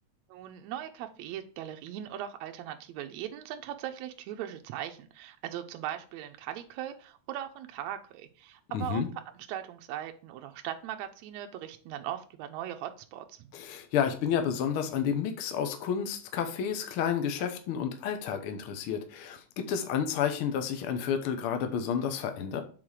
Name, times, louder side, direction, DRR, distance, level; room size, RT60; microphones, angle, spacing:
voice 1, 0.3-9.0 9.4-13.5, right 11 dB, 80° right, 5 dB, 1.9 m, -39 dB
voice 2, 8.7-9.1 13.5-22.6, left 8 dB, 65° left, 6 dB, 1.4 m, -30 dB
7.5 x 4.1 x 4.8 m, 0.40 s
omnidirectional pair, 3.3 m